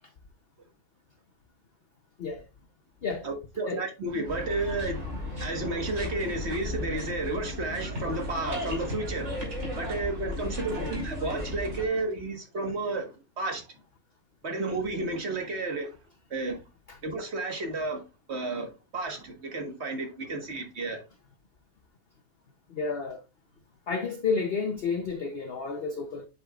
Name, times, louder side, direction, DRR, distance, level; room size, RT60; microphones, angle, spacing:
voice 1, 3.2-9.4 9.8-13.7 14.4-16.0 16.3-16.6 17.0-18.0 18.3-21.0, right 2 dB, 45° right, 1.6 m, -32 dB
sound 1, 4.3-11.9, left 1 dB, 60° right, 3.2 m, -35 dB
voice 2, 22.7-23.2 23.9-26.3, left 4 dB, 50° left, 0.8 m, -31 dB
8.0 x 5.6 x 2.4 m
omnidirectional pair, 1.6 m